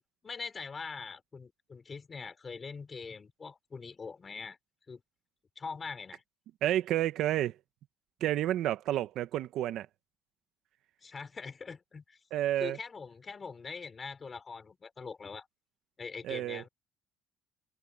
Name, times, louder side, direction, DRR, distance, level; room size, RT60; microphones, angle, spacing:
voice 1, 0.2-4.6 4.9-5.0 5.6-6.2 11.0-12.2 12.6-15.5 16.0-16.7, left 5 dB, 30° left, 4.2 m, -43 dB
voice 2, 6.6-7.5 8.2-9.9 12.3-12.8 16.2-16.6, right 13 dB, 65° right, 1.4 m, -30 dB
cardioid pair, 105°, 0 cm